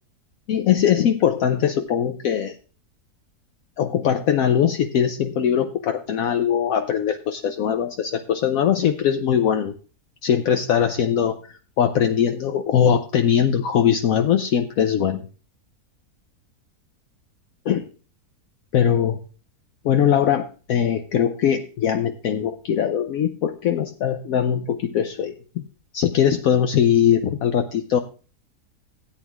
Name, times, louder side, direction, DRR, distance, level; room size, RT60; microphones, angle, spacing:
voice 1, 0.5-2.5 3.8-9.7 10.2-15.2 17.7-17.8 18.7-19.2 19.8-25.6 25.9-28.0, left 9 dB, 70° left, 7 dB, 1.0 m, -21 dB
16.5 x 8.9 x 2.4 m, 0.37 s
omnidirectional pair, 1.7 m